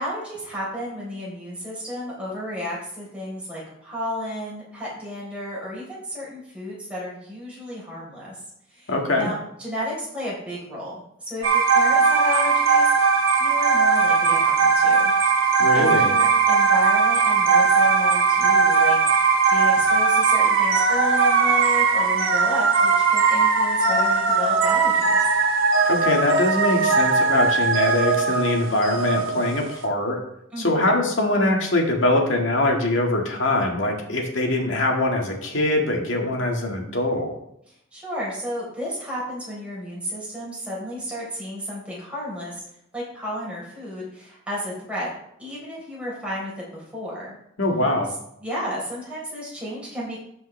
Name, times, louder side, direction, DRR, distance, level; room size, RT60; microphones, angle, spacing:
voice 1, 0.0-8.4 8.7-12.9 13.4-15.1 15.7-25.2 30.5-30.8 37.7-42.6 42.9-45.1 45.4-47.3 48.4-50.2, equal, 5° right, -6 dB, 3.9 m, -32 dB
voice 2, 8.9-9.3 15.6-16.1 25.9-30.2 30.6-37.3 47.6-48.1, left 1 dB, 75° left, 1 dB, 1.8 m, -22 dB
sound 1, 11.4-29.8, right 5 dB, 80° right, 1.3 m, -19 dB
13.0 x 5.7 x 3.3 m, 0.75 s
head